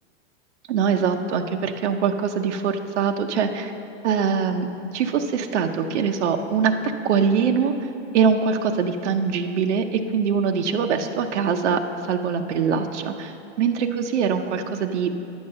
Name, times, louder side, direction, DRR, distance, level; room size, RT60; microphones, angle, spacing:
voice 1, 0.7-3.7 4.0-6.7 7.0-7.7 8.1-11.8 12.1-15.1, right 6 dB, 90° right, 4 dB, 0.8 m, -23 dB
10.5 x 7.2 x 6.5 m, 2.9 s
supercardioid pair, 140°, 34 cm